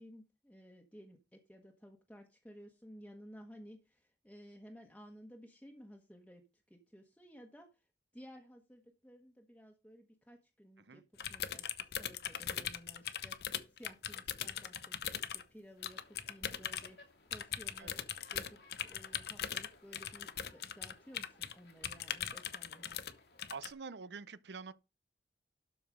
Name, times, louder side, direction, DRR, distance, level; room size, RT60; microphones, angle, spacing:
voice 1, 0.0-7.9 8.1-11.0 11.3-18.0 18.3-22.9, equal, 5° left, 1.3 m, -56 dB
sound 1, 11.2-15.4 15.8-16.9 17.3-21.5 21.8-23.1 23.4-23.7, left 9 dB, 60° left, 0.8 m, -40 dB
sound 2, 15.7-23.8, left 2 dB, 80° left, 2.6 m, -64 dB
voice 2, 23.5-24.7, right 5 dB, 75° right, 0.6 m, -46 dB
12.5 x 5.0 x 5.2 m
head